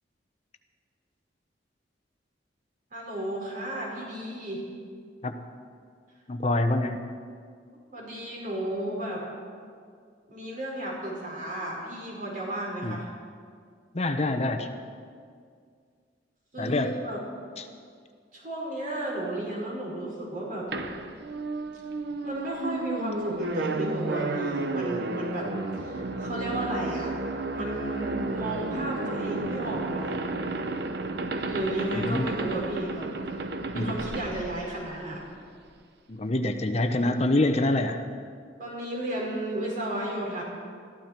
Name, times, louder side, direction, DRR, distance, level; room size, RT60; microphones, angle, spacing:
voice 1, 2.9-4.6 7.9-9.2 10.3-13.1 16.5-17.2 18.3-20.7 22.2-27.1 27.4-30.2 31.4-33.1 33.3-33.4 33.7-35.2 38.6-40.4, right 1 dB, 50° right, -4 dB, 5.1 m, -33 dB
voice 2, 6.3-7.1 12.8-13.0 13.9-14.7 16.6-17.0 17.6-17.7 31.9-32.3 33.7-34.0 36.1-38.0, left 2 dB, 35° left, 7 dB, 0.8 m, -26 dB
sound 1, 20.7-35.3, right 2 dB, 65° right, 0.9 m, -32 dB
21.5 x 13.5 x 4.5 m, 2.1 s
head